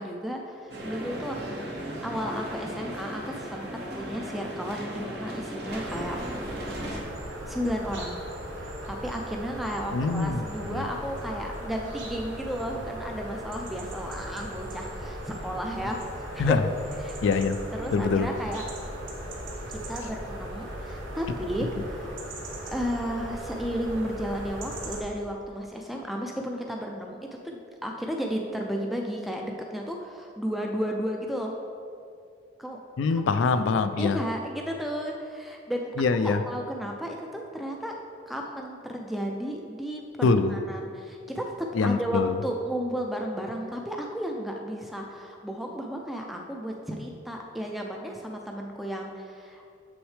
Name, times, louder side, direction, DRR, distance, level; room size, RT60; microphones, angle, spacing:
voice 1, 0.0-1.6 2.0-3.7 4.0-6.2 7.5-8.2 8.9-16.0 16.3-16.6 17.0-17.2 17.7-18.6 19.7-22.2 22.7-31.5 32.6-32.8 33.1-33.3 34.0-37.9 38.3-40.0 40.5-49.6, equal, ahead, 1 dB, 0.3 m, -33 dB
sound 1, 0.7-7.0, right 1 dB, 60° right, 1.0 m, -36 dB
sound 2, 5.7-25.0, right 1 dB, 85° right, 1.0 m, -38 dB
voice 2, 9.9-10.4 10.7-10.8 16.4-16.6 17.2-17.6 17.9-18.3 33.0-34.2 36.0-36.4 40.2-40.6 41.7-42.4, left 4 dB, 85° left, 11 dB, 0.4 m, -24 dB
7.2 x 6.1 x 3.2 m, 2.4 s
head